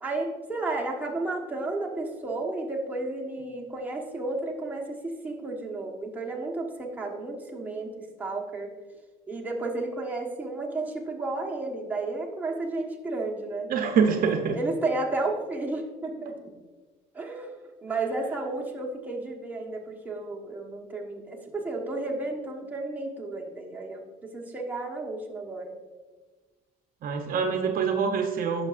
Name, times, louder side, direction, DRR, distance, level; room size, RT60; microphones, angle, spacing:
voice 1, 0.0-8.7 9.3-13.7 14.5-16.3 17.1-25.7, right 2 dB, 10° right, -2 dB, 1.2 m, -32 dB
voice 2, 13.7-14.6 27.0-28.7, right 6 dB, 60° right, 5 dB, 0.7 m, -25 dB
10.5 x 6.2 x 2.5 m, 1.3 s
cardioid pair, 110°, 17 cm